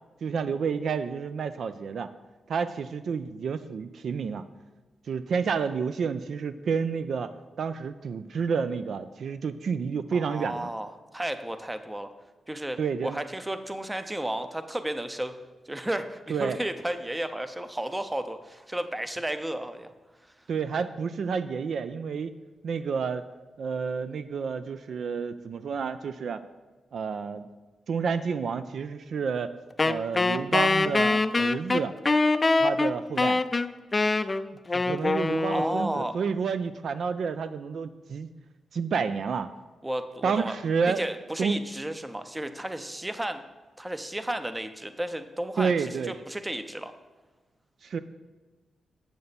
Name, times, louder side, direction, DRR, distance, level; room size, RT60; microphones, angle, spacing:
voice 1, 0.2-2.1 2.5-4.4 5.1-10.7 12.8-13.2 16.3-16.6 20.5-22.4 22.6-23.2 23.6-26.4 26.9-27.5 27.9-29.5 29.8-31.9 32.6-33.4 34.7-38.3 38.7-39.5 40.2-41.0 41.4-41.6 45.6-46.1 47.8-48.0, right 6 dB, 70° right, 12 dB, 0.3 m, -30 dB
voice 2, 10.1-12.1 12.5-15.3 15.7-19.9 35.4-36.1 39.8-40.5 41.0-43.4 43.8-46.9, right 1 dB, 15° right, 10 dB, 0.6 m, -33 dB
Wind instrument woodwind instrument, 29.8-36.1, left 3 dB, 30° left, 0.3 m, -24 dB
7.7 x 6.9 x 4.1 m, 1.3 s
cardioid pair, 80°, 0 cm